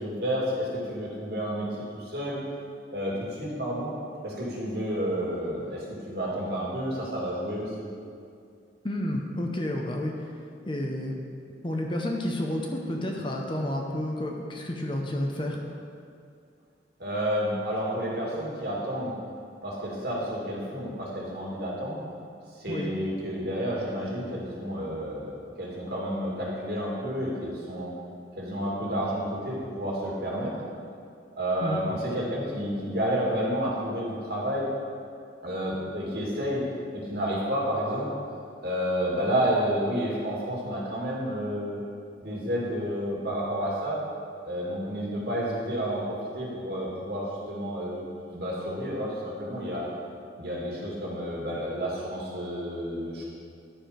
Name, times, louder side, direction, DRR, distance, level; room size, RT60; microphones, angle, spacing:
voice 1, 0.0-2.4 2.9-3.9 4.2-7.9 17.0-19.2 19.6-22.0 22.5-27.9 28.4-30.6 31.4-34.7 35.4-36.6 36.9-38.1 38.6-41.8 42.2-44.0 44.4-48.0 48.3-49.9 50.4-53.2, equal, 60° right, -5 dB, 2.1 m, -30 dB
voice 2, 8.8-10.3 10.7-11.2 11.6-15.6 22.7-22.9 31.6-31.8, left 1 dB, 25° left, 1 dB, 0.7 m, -30 dB
10.5 x 4.9 x 5.0 m, 2.4 s
head